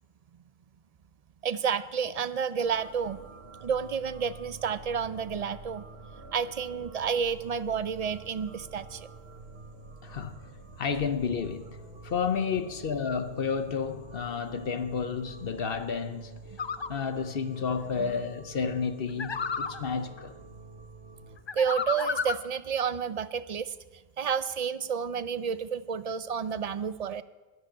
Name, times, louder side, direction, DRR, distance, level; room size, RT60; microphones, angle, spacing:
voice 1, 1.4-3.2 3.6-5.8 6.3-9.1 18.0-18.1 21.5-23.7 24.2-27.2, right 7 dB, 45° right, 0.6 m, -30 dB
sound 1, 2.6-21.4, right 3 dB, 85° right, 1.4 m, -47 dB
voice 2, 10.0-10.4 10.8-16.3 16.9-20.3, left 6 dB, 65° left, 1.0 m, -31 dB
sound 2, 16.6-16.9 19.2-19.8 21.5-22.5, left 5 dB, 40° left, 0.4 m, -31 dB
11.5 x 11.0 x 8.7 m
omnidirectional pair, 1.0 m